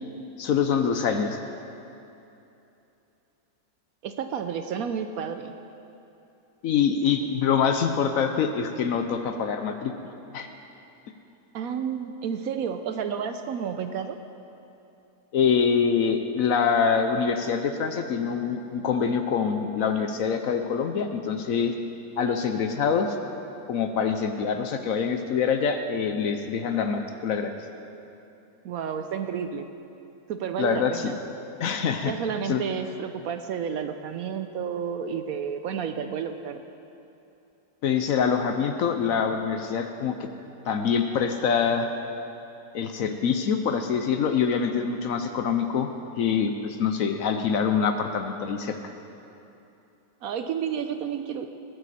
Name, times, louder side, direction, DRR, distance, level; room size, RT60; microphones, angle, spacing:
voice 1, 0.4-1.4 6.6-10.5 15.3-21.7 22.2-23.2 23.7-27.5 30.6-31.1 31.6-32.1 32.5-32.6 37.8-40.3 40.7-41.9 42.7-45.9 46.2-48.8, left 6 dB, 65° left, 7 dB, 1.0 m, -25 dB
voice 2, 4.0-5.5 11.5-14.2 28.6-29.7 30.3-31.2 32.0-36.6 50.2-51.5, right 7 dB, 70° right, 8 dB, 0.9 m, -31 dB
20.0 x 9.5 x 4.2 m, 2.9 s
omnidirectional pair, 1.8 m